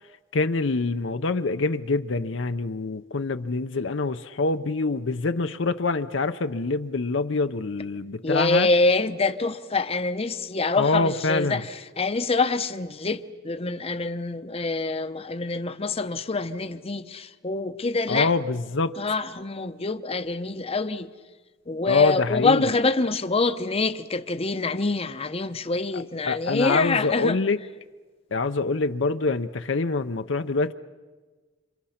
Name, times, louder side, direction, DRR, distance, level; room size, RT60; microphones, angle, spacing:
voice 1, 0.3-8.7 10.8-11.6 18.1-19.0 21.9-22.7 25.9-27.6 28.3-30.7, left 3 dB, 65° left, 0.7 m, -25 dB
voice 2, 8.2-18.3 19.0-21.1 21.7-27.4, left 3 dB, 30° left, 0.8 m, -25 dB
29.5 x 26.5 x 5.8 m
head